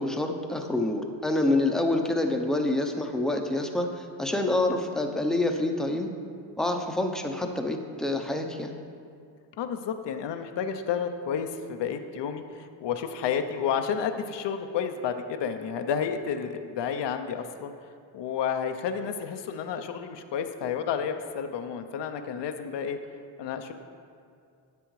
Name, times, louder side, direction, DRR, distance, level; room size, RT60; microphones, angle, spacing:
voice 1, 0.0-6.1 6.6-8.7, left 2 dB, ahead, 4 dB, 0.6 m, -27 dB
voice 2, 9.6-17.7 18.1-23.0 23.4-23.7, left 7 dB, 65° left, 8 dB, 0.6 m, -31 dB
10.5 x 7.5 x 3.1 m, 2.3 s
cardioid pair, 95°, 46 cm